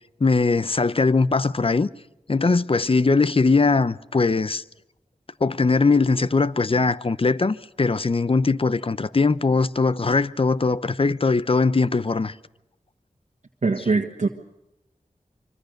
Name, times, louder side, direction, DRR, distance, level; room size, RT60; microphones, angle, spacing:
voice 1, 0.2-1.9 2.3-4.6 5.4-12.3, left 3 dB, 40° left, 0.8 m, -20 dB
voice 2, 13.6-14.3, right 3 dB, 60° right, 1.5 m, -22 dB
25.0 x 24.5 x 6.6 m
wide cardioid pair, 65°, 14 cm